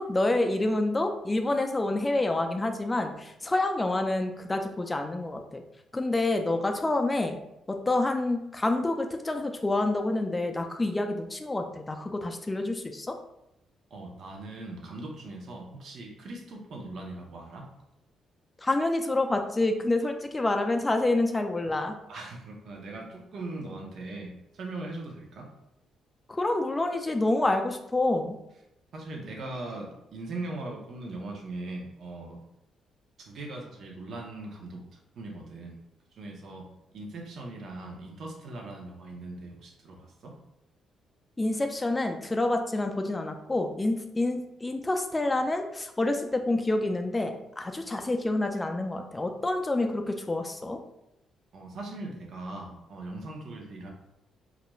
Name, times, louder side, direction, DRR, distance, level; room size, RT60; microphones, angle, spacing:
voice 1, 0.0-5.6 5.9-7.4 7.7-13.1 18.6-22.0 26.3-28.4 41.4-50.8, left 2 dB, 20° left, 5 dB, 0.3 m, -28 dB
voice 2, 13.9-17.7 22.1-25.5 28.9-32.4 33.2-34.8 35.2-35.8 36.2-36.7 36.9-40.3 51.5-53.9, right 2 dB, 60° right, 0 dB, 0.6 m, -40 dB
2.4 x 2.1 x 3.0 m, 0.86 s
cardioid pair, 90°, 0 cm